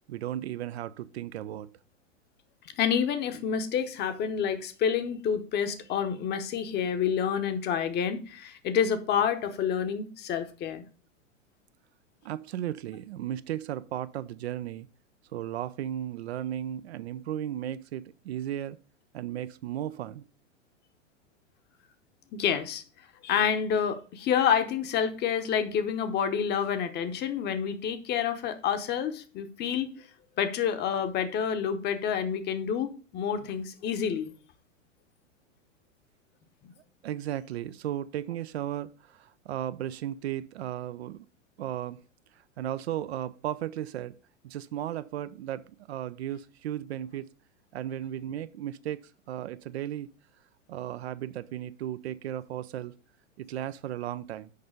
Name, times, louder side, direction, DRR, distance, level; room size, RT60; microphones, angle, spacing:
voice 1, 0.1-1.7 12.2-14.9 15.3-18.8 19.1-20.2 37.0-41.3 41.6-42.0 42.6-44.2 44.4-47.3 47.7-50.1 50.7-52.9 53.4-54.5, right 11 dB, 60° right, 0.5 m, -35 dB
voice 2, 2.8-10.8 22.3-22.8 23.2-30.1 30.4-34.3, left 8 dB, 25° left, 0.9 m, -28 dB
6.6 x 5.4 x 5.0 m
figure-of-eight pair, 100°, 38 cm